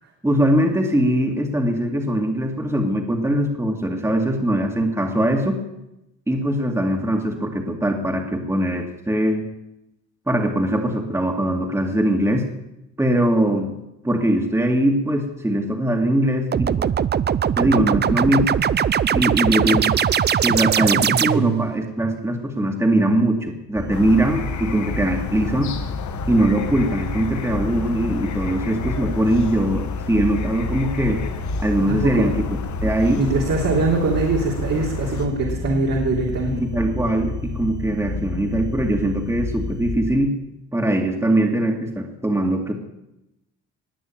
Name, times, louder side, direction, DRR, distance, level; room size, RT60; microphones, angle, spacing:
voice 1, 0.2-5.6 6.3-9.5 10.3-12.4 13.0-13.7 14.0-16.9 17.6-18.6 19.1-19.9 20.4-25.8 26.3-31.2 31.6-32.4 32.8-33.3 36.5-40.3 40.7-42.7, right 1 dB, 10° right, 2 dB, 2.3 m, -21 dB
sound 1, 16.5-21.7, right 8 dB, 35° right, 0.5 m, -20 dB
voice 2, 18.1-18.5 19.4-19.8 32.0-32.3 33.2-36.6, right 3 dB, 60° right, -1 dB, 3.3 m, -23 dB
sound 2, 23.8-39.9, left 2 dB, 35° left, 1.7 m, -29 dB
Small Town at night, 23.9-35.3, left 8 dB, 70° left, 1.6 m, -35 dB
20.0 x 6.8 x 8.9 m, 0.91 s
cardioid pair, 90°, 30 cm